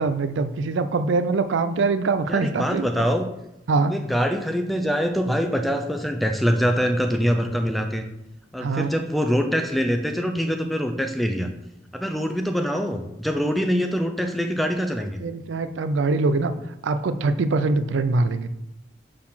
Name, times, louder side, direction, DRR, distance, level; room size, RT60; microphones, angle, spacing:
voice 1, 0.0-3.1 3.7-3.9 8.6-8.9 15.2-16.5 16.8-18.5, right 3 dB, 80° right, 12 dB, 0.4 m, -23 dB
voice 2, 2.3-3.2 3.9-8.0 8.5-11.5 11.9-15.2, equal, ahead, 5 dB, 0.5 m, -24 dB
6.5 x 3.9 x 5.7 m, 0.88 s
head